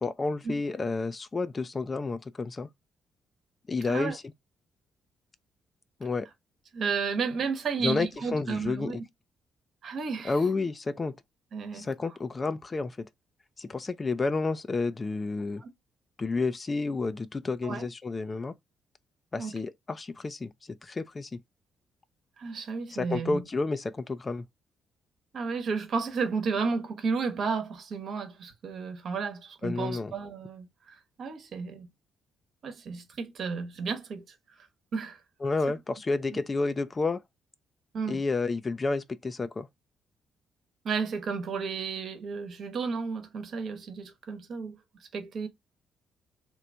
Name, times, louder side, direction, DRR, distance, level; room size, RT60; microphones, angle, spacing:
voice 1, 0.0-2.7 3.7-4.2 6.0-6.3 7.8-9.0 10.2-11.2 11.7-13.1 13.6-15.6 16.2-18.5 19.3-20.5 20.8-21.4 22.9-24.4 29.6-30.1 35.4-37.2 38.1-39.7, left 3 dB, 35° left, 0.4 m, -30 dB
voice 2, 6.7-9.0 9.8-10.3 11.5-11.8 15.6-15.7 17.6-17.9 19.4-19.6 22.4-23.4 25.3-31.9 32.6-34.2 34.9-35.2 35.7-35.8 36.3-36.4 37.9-38.2 40.8-45.5, right 5 dB, 60° right, 1.0 m, -32 dB
3.0 x 2.5 x 3.2 m
hypercardioid pair, 45°, 0 cm